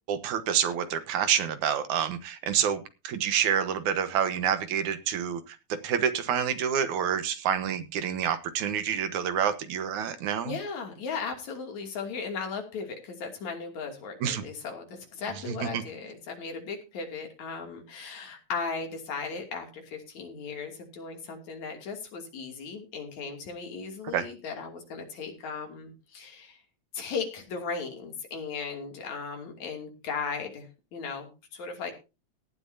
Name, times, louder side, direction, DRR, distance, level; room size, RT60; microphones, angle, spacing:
voice 1, 0.1-10.6 14.2-14.4 15.6-15.8 24.1-24.3, right 8 dB, 85° right, 10 dB, 2.8 m, -28 dB
voice 2, 10.4-26.6 26.9-31.9, left 5 dB, 75° left, 3 dB, 4.1 m, -37 dB
17.5 x 12.0 x 2.8 m, 0.30 s
omnidirectional pair, 3.3 m